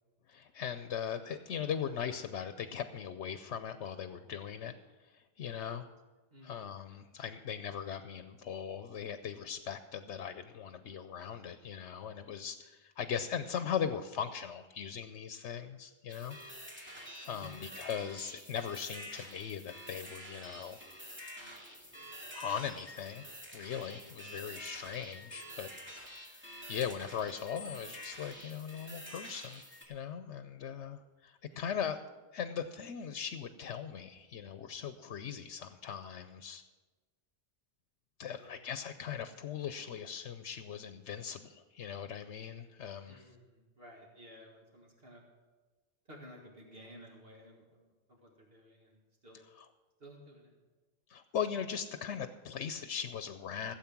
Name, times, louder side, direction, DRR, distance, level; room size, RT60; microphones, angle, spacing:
voice 1, 0.3-4.7 5.0-5.9 6.4-16.4 17.2-20.8 22.3-23.2 23.5-32.0 32.3-36.6 38.2-43.2 49.6-49.7 51.1-53.7, left 8 dB, 85° left, 10 dB, 1.0 m, -39 dB
voice 2, 6.3-6.7 17.3-17.8 31.5-31.7 38.3-38.6 43.1-45.2 46.1-49.4 50.0-50.6, equal, 60° right, -1 dB, 2.2 m, -54 dB
sound 1, 16.1-29.8, equal, 10° right, 2.5 m, -48 dB
16.0 x 8.1 x 6.0 m, 1.3 s
omnidirectional pair, 1.2 m